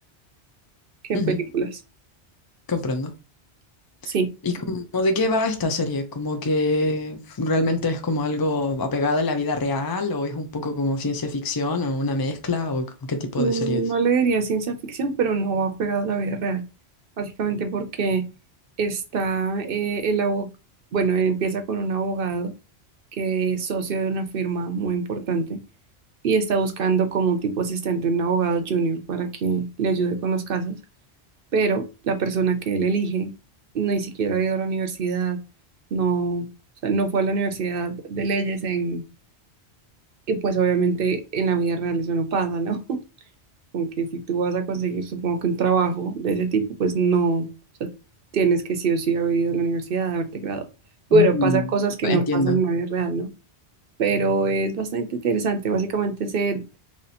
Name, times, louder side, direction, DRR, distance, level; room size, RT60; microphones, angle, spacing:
voice 1, 2.7-3.1 4.0-4.1 4.4-13.8 51.1-51.6 52.0-52.6, left 2 dB, 40° left, 0.3 m, -25 dB
voice 2, 13.4-16.6 17.2-18.2 18.8-20.5 20.9-22.5 23.2-25.6 26.2-30.8 31.5-33.3 33.7-35.4 35.9-36.5 36.8-39.0 40.3-43.0 43.7-47.5 47.8-47.9 48.3-50.7 51.1-53.3 54.0-56.6, right 4 dB, 60° right, 0.7 m, -24 dB
3.1 x 2.7 x 4.1 m
omnidirectional pair, 1.1 m